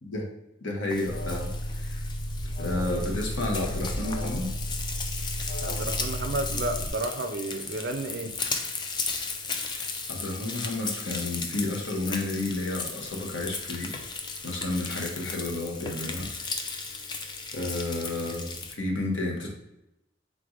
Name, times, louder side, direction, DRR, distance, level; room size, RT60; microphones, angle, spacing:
voice 1, 0.6-2.0 2.6-4.5 9.7-13.9 14.4-16.3 17.5-19.5, left 2 dB, 70° left, 0 dB, 1.1 m, -31 dB
Frying (food), 0.9-18.7, left 4 dB, 20° left, 0.3 m, -35 dB
Alarm, 1.0-6.9, equal, 45° left, 0.7 m, -33 dB
voice 2, 5.6-8.3, right 2 dB, 55° right, 8 dB, 0.4 m, -32 dB
3.7 x 3.4 x 3.8 m, 0.90 s
head